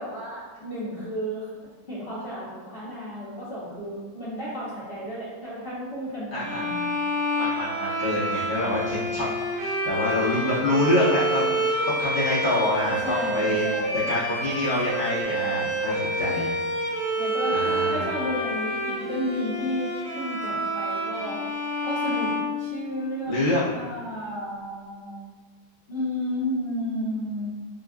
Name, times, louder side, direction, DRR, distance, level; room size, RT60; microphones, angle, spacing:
voice 1, 0.0-1.5 1.9-7.1 13.0-14.1 17.2-21.4 21.8-25.2 25.9-27.5, equal, 45° left, -11 dB, 0.9 m, -32 dB
voice 2, 6.3-6.7 7.3-9.3 9.6-13.6 14.1-16.5 17.5-18.0 23.3-23.7, left 1 dB, 15° right, -12 dB, 0.7 m, -26 dB
sound 1, 6.4-23.2, equal, 75° right, 1.8 m, -28 dB
5.1 x 2.3 x 2.4 m, 1.4 s
omnidirectional pair, 1.9 m